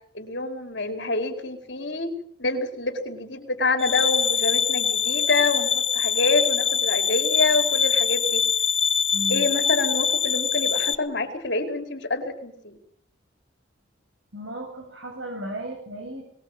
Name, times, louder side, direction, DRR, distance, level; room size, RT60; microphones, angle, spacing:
voice 1, 0.1-2.1 2.4-8.4 9.3-12.8, left 3 dB, 55° left, 4 dB, 4.8 m, -27 dB
sound 1, 3.8-10.9, left 7 dB, 30° left, 1.0 m, -23 dB
voice 2, 9.1-9.4 14.3-16.2, right 1 dB, 70° right, 2 dB, 7.9 m, -35 dB
24.0 x 22.0 x 7.6 m, 0.65 s
head